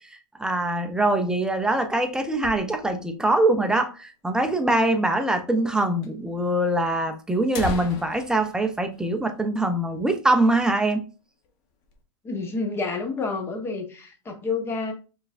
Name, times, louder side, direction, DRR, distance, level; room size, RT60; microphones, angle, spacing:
voice 1, 0.1-11.0, right 1 dB, 5° right, 0.4 m, -23 dB
sound 1, 1.3-3.2 3.5-3.6 3.8-3.9 4.6-4.7 5.6-5.7 6.0-6.1 6.9-7.0 7.3-9.9 10.2-10.4 10.8-11.0 11.4-12.0, left 5 dB, 45° left, 0.9 m, -38 dB
voice 2, 12.2-14.9, left 4 dB, 15° left, 0.9 m, -29 dB
4.5 x 3.2 x 2.4 m
supercardioid pair, 150°, 15 cm